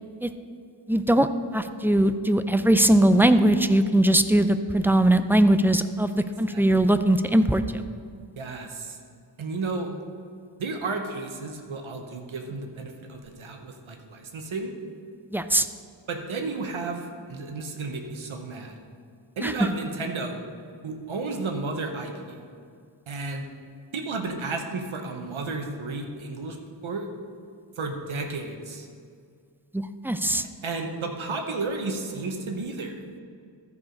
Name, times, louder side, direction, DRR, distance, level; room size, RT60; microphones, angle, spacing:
voice 1, 0.9-1.3 1.5-7.8 15.3-15.7 19.4-19.5 29.7-30.4, right 1 dB, 5° right, 10 dB, 0.3 m, -20 dB
voice 2, 8.4-9.0 9.4-9.9 10.6-14.7 16.1-18.7 19.4-20.4 20.8-22.4 23.1-23.5 23.9-26.6 26.8-27.1 27.8-28.9 30.6-33.0, right 3 dB, 85° right, 4 dB, 1.0 m, -32 dB
13.5 x 4.8 x 5.1 m, 2.3 s
wide cardioid pair, 70°, 47 cm